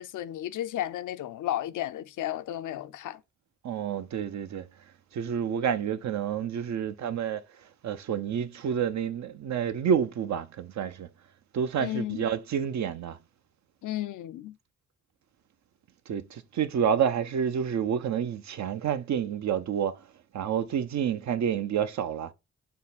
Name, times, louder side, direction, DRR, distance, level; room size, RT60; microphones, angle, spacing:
voice 1, 0.0-3.2 11.8-12.3 13.8-14.6, left 13 dB, 75° left, 0.5 m, -33 dB
voice 2, 3.6-4.7 5.1-7.4 7.8-11.1 11.5-13.2 16.1-20.0 20.3-22.3, right 8 dB, 65° right, 0.5 m, -29 dB
3.7 x 2.2 x 4.1 m
supercardioid pair, 45°, 31 cm